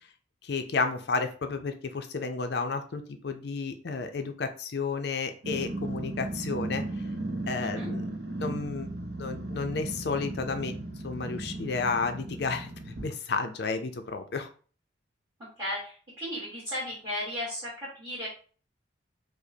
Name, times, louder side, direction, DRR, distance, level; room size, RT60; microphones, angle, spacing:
voice 1, 0.4-6.8 7.5-8.1 8.4-8.9 9.2-10.7 11.0-12.7 13.0-14.5, left 4 dB, 55° left, 7 dB, 0.4 m, -32 dB
Growling, 5.4-13.1, right 2 dB, 55° right, 0.7 m, -36 dB
voice 2, 15.6-18.3, left 1 dB, 20° right, -9 dB, 1.4 m, -35 dB
4.9 x 2.1 x 2.7 m, 0.40 s
head